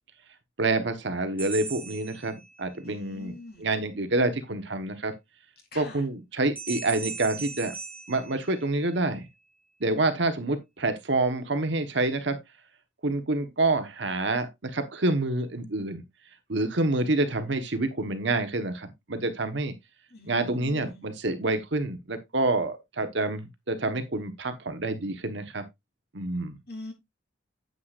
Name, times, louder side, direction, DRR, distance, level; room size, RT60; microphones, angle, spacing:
voice 1, 0.6-5.1 5.7-7.7 8.1-9.3 9.8-12.4 13.0-16.0 16.5-19.7 20.3-25.6 26.1-26.6, right 2 dB, 65° right, 1.2 m, -27 dB
sound 1, 1.4-2.9 6.6-9.1, right 4 dB, 10° right, 1.5 m, -39 dB
voice 2, 2.8-3.7 5.7-6.0 20.1-21.1 26.7-26.9, left 2 dB, 50° left, 3.2 m, -43 dB
9.4 x 8.1 x 2.5 m
head